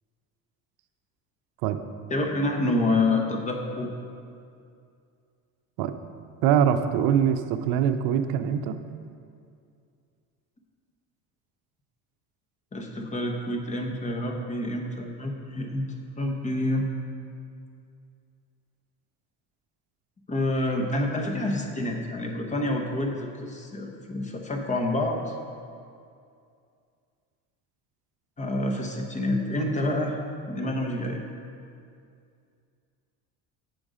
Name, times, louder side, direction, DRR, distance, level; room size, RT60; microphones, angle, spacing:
voice 1, 2.1-3.9 12.7-15.9 16.2-16.8 20.3-25.3 28.4-30.2 30.5-31.2, left 1 dB, 20° left, 2 dB, 0.8 m, -28 dB
voice 2, 6.4-8.8, right 8 dB, 75° right, 9 dB, 0.6 m, -23 dB
7.7 x 5.2 x 4.9 m, 2.4 s
cardioid pair, 125°, 38 cm